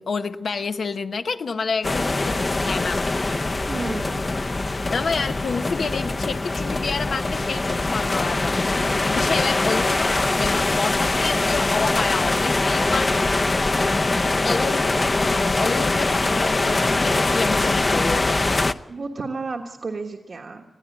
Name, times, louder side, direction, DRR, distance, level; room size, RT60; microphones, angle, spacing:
voice 1, 0.0-3.0 4.9-13.1 14.4-18.5, left 4 dB, 80° left, 7 dB, 0.9 m, -29 dB
sound 1, 1.8-18.7, left 2 dB, 35° left, 0.7 m, -22 dB
voice 2, 3.7-4.2 18.9-20.6, right 3 dB, 60° right, 1 dB, 1.5 m, -32 dB
21.5 x 15.0 x 8.5 m, 1.1 s
wide cardioid pair, 100°, 0 cm